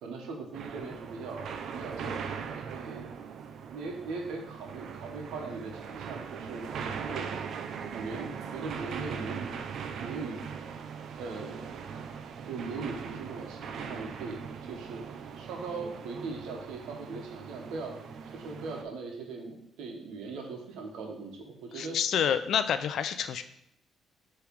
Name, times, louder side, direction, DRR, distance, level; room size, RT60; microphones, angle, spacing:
voice 1, 0.0-2.4 2.6-3.1 3.7-7.3 7.9-9.6 10.0-10.4 11.2-11.7 12.4-15.0 15.3-18.0 18.3-22.0, right 4 dB, 90° right, 2 dB, 1.2 m, -40 dB
sound 1, 0.5-18.8, right 6 dB, 70° right, 0.5 m, -40 dB
voice 2, 21.7-23.4, left 8 dB, 70° left, 11 dB, 0.4 m, -28 dB
6.8 x 3.3 x 4.7 m, 0.76 s
cardioid pair, 90°, 0 cm